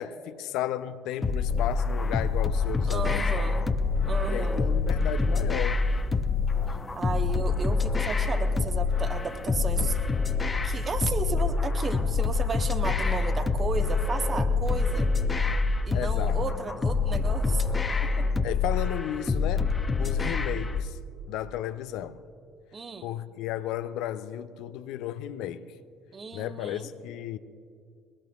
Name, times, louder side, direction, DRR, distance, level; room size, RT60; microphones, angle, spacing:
voice 1, 0.0-3.4 4.3-5.8 7.7-7.8 15.9-16.4 18.4-19.7 20.0-21.0 21.3-22.2 23.0-25.7 26.3-27.4, left 11 dB, 65° left, 0.4 m, -34 dB
sound 1, 1.2-20.8, left 4 dB, 25° left, 0.8 m, -26 dB
voice 2, 2.9-3.7 4.0-4.7 6.9-10.0 10.6-15.1 15.8-17.6 18.2-18.3 22.7-23.2 26.1-26.9, right 4 dB, 35° right, 1.1 m, -34 dB
21.5 x 19.0 x 2.4 m
hypercardioid pair, 55°, 0 cm